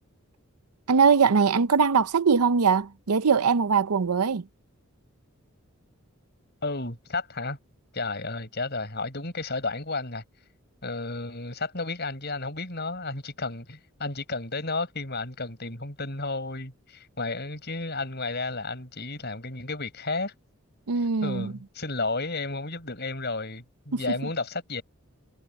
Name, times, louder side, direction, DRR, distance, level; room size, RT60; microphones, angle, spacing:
voice 1, 0.9-4.4 20.9-21.5 23.9-24.0, right 5 dB, 85° right, 0.6 m, -21 dB
voice 2, 6.6-7.6 7.9-10.2 10.8-20.3 21.2-24.8, left 3 dB, 45° left, 7.0 m, -32 dB
head